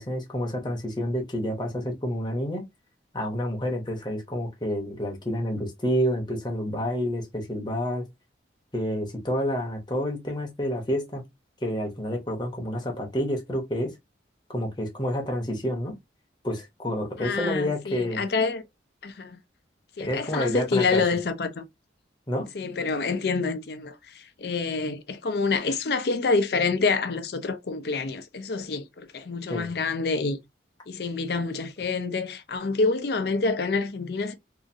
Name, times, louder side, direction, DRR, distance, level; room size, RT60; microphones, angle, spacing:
voice 1, 0.0-2.6 3.1-8.0 8.7-11.2 11.6-13.9 14.5-16.0 16.4-18.2 20.0-21.0 22.3-22.5 29.5-29.7, equal, 25° left, 0.8 m, -29 dB
voice 2, 17.2-18.6 19.0-19.4 20.0-21.6 22.5-30.4 30.9-34.3, left 4 dB, 60° left, 0.5 m, -27 dB
2.8 x 2.6 x 2.5 m
head